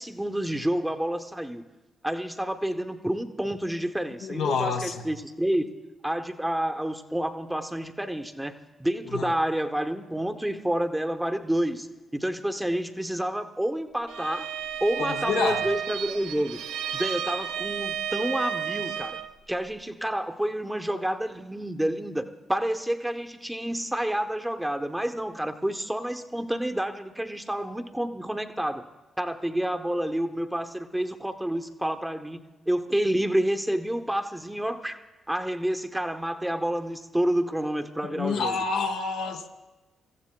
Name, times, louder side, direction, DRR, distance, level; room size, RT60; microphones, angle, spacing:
voice 1, 0.0-1.6 2.0-5.7 6.0-14.5 14.8-16.6 16.9-19.2 19.5-28.9 29.2-35.0 35.3-38.6, right 1 dB, 10° right, 6 dB, 0.9 m, -29 dB
voice 2, 4.2-5.0 9.1-9.3 15.0-15.6 38.0-39.5, left 5 dB, 75° left, 3 dB, 0.8 m, -28 dB
Bowed string instrument, 14.1-19.3, right 8 dB, 75° right, 0.4 m, -32 dB
26.0 x 14.5 x 2.3 m, 1.1 s
hypercardioid pair, 40°, 0 cm